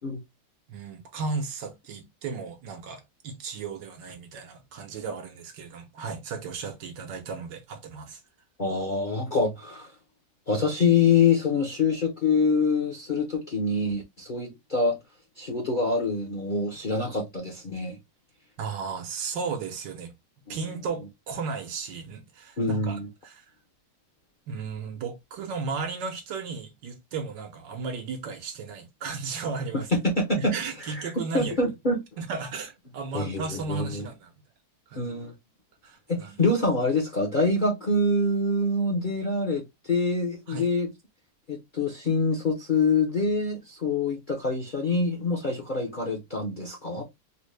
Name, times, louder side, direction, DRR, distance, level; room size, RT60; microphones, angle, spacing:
voice 1, 0.7-8.2 18.6-20.1 20.5-23.4 24.5-29.9 30.3-31.5 32.2-34.3 34.9-35.1 35.8-36.3 40.5-40.7, right 5 dB, 85° right, 1.6 m, -35 dB
voice 2, 8.6-9.9 10.5-15.0 15.4-18.0 20.5-20.6 22.6-23.1 29.9-30.5 30.8-32.0 33.1-34.0 35.0-35.3 36.1-40.9 41.5-47.0, left 3 dB, 45° left, 0.6 m, -25 dB
4.1 x 2.1 x 3.2 m
omnidirectional pair, 1.9 m